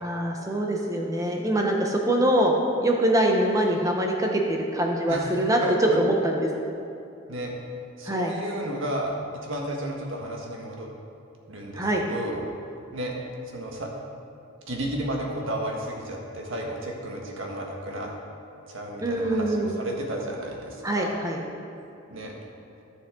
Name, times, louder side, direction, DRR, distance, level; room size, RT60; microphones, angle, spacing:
voice 1, 0.0-5.6 6.0-6.5 8.1-8.3 11.7-12.0 19.0-19.7 20.8-21.4, right 1 dB, 15° right, 0 dB, 0.9 m, -24 dB
voice 2, 5.1-6.0 7.3-7.5 8.0-10.9 11.5-12.4 12.9-13.1 13.5-13.9 14.7-18.1 18.7-21.2 22.1-22.3, right 1 dB, 75° right, 0 dB, 1.5 m, -33 dB
14.5 x 6.4 x 3.8 m, 2.6 s
head